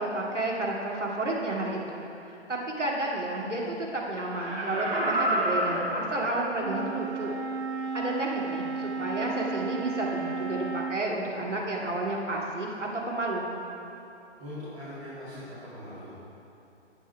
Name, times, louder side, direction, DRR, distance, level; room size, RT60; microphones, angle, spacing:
voice 1, 0.0-7.4 7.9-13.5, right 2 dB, 85° right, -3 dB, 2.3 m, -31 dB
Laughter, 4.2-6.8 7.3-7.4, right 1 dB, 5° right, 0.6 m, -29 dB
Wind instrument woodwind instrument, 6.6-11.0, right 4 dB, 65° right, 0.8 m, -33 dB
voice 2, 14.4-16.1, left 1 dB, 30° right, -12 dB, 2.5 m, -41 dB
11.5 x 8.5 x 4.6 m, 2.9 s
figure-of-eight pair, 140°, 35 cm